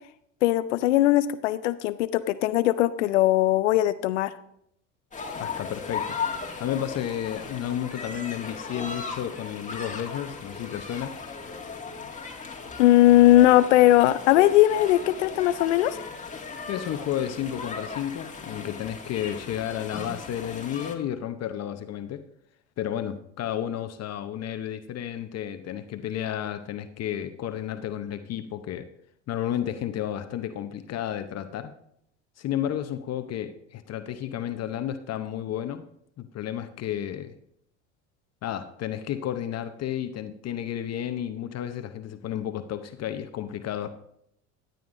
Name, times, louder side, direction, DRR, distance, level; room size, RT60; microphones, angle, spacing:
voice 1, 0.4-4.3 12.8-16.0, left 15 dB, 90° left, 14 dB, 0.5 m, -19 dB
sound 1, 5.1-20.9, left 5 dB, 20° left, 1.9 m, -37 dB
voice 2, 5.4-11.1 16.7-22.2 22.8-28.9 29.3-31.7 32.4-35.8 36.2-37.3 38.4-43.9, left 10 dB, 45° left, 9 dB, 0.8 m, -32 dB
13.5 x 9.2 x 2.6 m, 0.74 s
hypercardioid pair, 75°, 35 cm